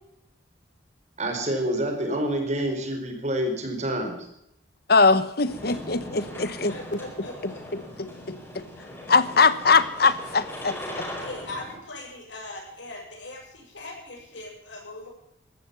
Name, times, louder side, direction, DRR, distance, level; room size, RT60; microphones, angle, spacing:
voice 1, 1.2-4.3, right 1 dB, 35° right, 4 dB, 4.5 m, -27 dB
voice 2, 4.9-6.7 7.7-8.6 9.1-10.8, left 4 dB, 55° left, 15 dB, 1.1 m, -21 dB
sound 1, 5.4-11.8, left 1 dB, 15° left, 4.9 m, -39 dB
voice 3, 6.5-7.6 11.2-15.1, left 2 dB, 75° left, 0 dB, 7.4 m, -40 dB
15.5 x 12.5 x 7.1 m, 0.79 s
head